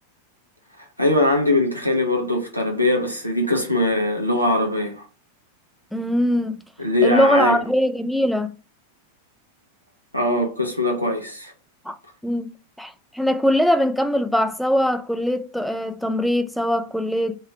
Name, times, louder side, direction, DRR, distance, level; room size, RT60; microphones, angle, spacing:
voice 1, 1.0-5.0 6.8-7.6 10.1-11.5, left 1 dB, 90° right, 1.0 m, -21 dB
voice 2, 5.9-6.6 7.0-8.5 11.9-12.0 12.2-12.5 12.8-17.4, equal, ahead, 0.4 m, -21 dB
3.3 x 2.7 x 4.4 m
figure-of-eight pair, 90°, 0 cm